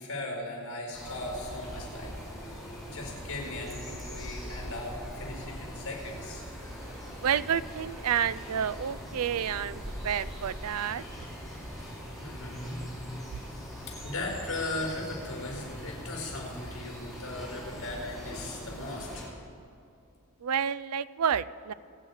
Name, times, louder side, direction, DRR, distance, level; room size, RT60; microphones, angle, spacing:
voice 1, 0.0-2.1 2.5-2.6 2.8-6.4 9.0-9.1 12.2-12.8 13.5-13.7 14.0-19.2, left 2 dB, 80° left, 0 dB, 4.7 m, -38 dB
sound 1, 0.9-19.3, equal, ahead, 4.5 m, -41 dB
voice 2, 7.2-11.0 20.4-21.7, right 8 dB, 85° right, 16 dB, 0.4 m, -29 dB
25.5 x 8.8 x 4.9 m, 2.5 s
head